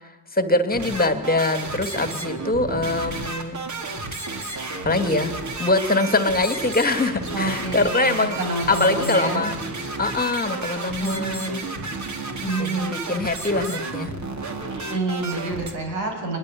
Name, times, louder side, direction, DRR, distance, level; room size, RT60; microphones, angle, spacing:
voice 1, 0.3-3.6 4.4-8.4 8.7-9.6 10.0-11.6 12.6-14.1, left 2 dB, 20° left, 9 dB, 2.5 m, -23 dB
sound 1, 0.7-15.7, right 3 dB, 35° right, 4.1 m, -32 dB
voice 2, 7.3-9.5 11.0-11.4 12.4-12.9 14.9-16.4, right 2 dB, 80° right, 4 dB, 7.6 m, -28 dB
23.5 x 23.0 x 9.4 m, 1.1 s
hypercardioid pair, 60°, 47 cm